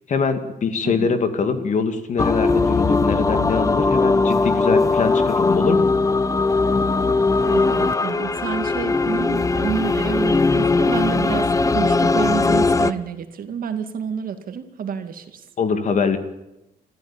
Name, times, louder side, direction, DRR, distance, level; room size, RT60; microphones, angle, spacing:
voice 1, 0.1-5.9 15.6-16.2, left 5 dB, 50° left, 8 dB, 2.4 m, -23 dB
voice 2, 0.8-1.1 7.4-15.4, right 7 dB, 60° right, 8 dB, 2.2 m, -29 dB
sound 1, 2.2-12.9, left 3 dB, 20° left, 0.9 m, -19 dB
25.5 x 14.5 x 8.8 m, 0.93 s
cardioid pair, 130°, 17 cm